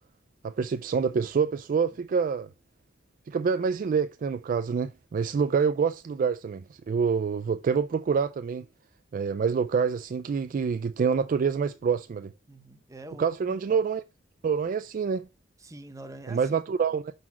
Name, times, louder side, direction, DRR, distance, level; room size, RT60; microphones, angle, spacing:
voice 1, 0.4-2.5 3.3-8.6 9.1-12.3 13.2-14.0 14.4-15.3 16.3-17.1, right 6 dB, 45° right, 0.3 m, -26 dB
voice 2, 12.5-13.8 15.6-16.6, right 1 dB, 15° right, 0.7 m, -45 dB
6.0 x 4.0 x 4.2 m
head